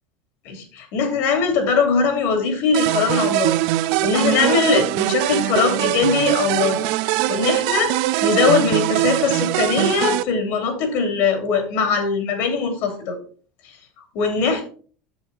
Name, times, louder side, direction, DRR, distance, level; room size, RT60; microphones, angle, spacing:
voice 1, 0.4-6.8 7.3-7.9 8.2-13.2 14.1-14.7, left 5 dB, 65° left, 5 dB, 2.9 m, -21 dB
sound 1, 2.7-10.2, right 16 dB, 70° right, 0.4 m, -21 dB
7.9 x 6.9 x 4.1 m, 0.42 s
supercardioid pair, 115°, 4 cm